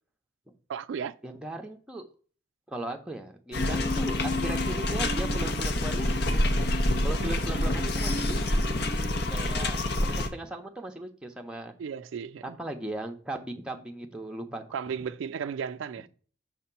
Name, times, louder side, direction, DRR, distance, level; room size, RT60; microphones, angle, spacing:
voice 1, 0.7-1.2 3.6-3.8 7.2-7.4 11.8-12.6 14.7-16.1, right 7 dB, 80° right, 0.3 m, -35 dB
voice 2, 1.2-2.1 2.7-6.4 7.0-8.8 9.3-11.7 12.4-14.6, right 1 dB, 5° right, 0.7 m, -38 dB
sound 1, 3.5-10.3, left 1 dB, 55° left, 0.7 m, -27 dB
6.0 x 2.9 x 5.6 m
head